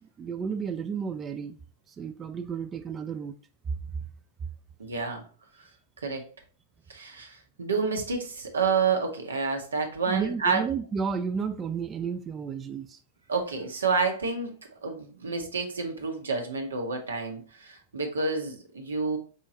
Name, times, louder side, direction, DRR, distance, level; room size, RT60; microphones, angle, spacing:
voice 1, 0.0-1.6 1.9-3.3 10.1-13.0, right 6 dB, 25° right, 0.3 m, -32 dB
voice 2, 4.8-5.2 6.0-6.3 6.9-10.6 13.3-14.5 14.8-19.2, right 4 dB, 90° right, 1.0 m, -29 dB
4.4 x 3.7 x 2.8 m
hypercardioid pair, 105°, 0 cm